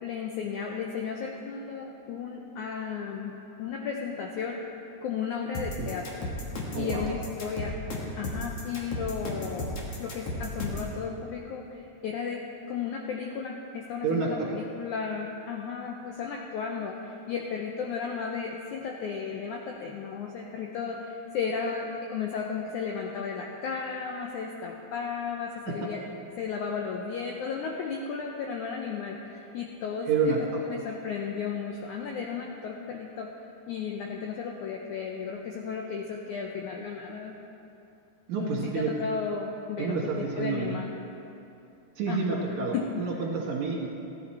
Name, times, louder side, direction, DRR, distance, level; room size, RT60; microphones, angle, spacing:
voice 1, 0.0-3.3 3.6-4.6 5.0-6.3 6.8-7.8 8.2-12.4 12.7-26.0 26.4-33.3 33.7-37.3 38.4-40.9 42.1-43.2, left 6 dB, 85° left, 0 dB, 1.7 m, -34 dB
sound 1, 5.5-10.9, left 1 dB, 50° left, 2.0 m, -34 dB
voice 2, 6.7-7.1 14.0-14.5 30.1-30.6 38.3-38.9 39.8-40.8 42.0-43.9, right 5 dB, 60° right, -2 dB, 2.3 m, -29 dB
16.0 x 10.5 x 4.3 m, 2.8 s
omnidirectional pair, 4.4 m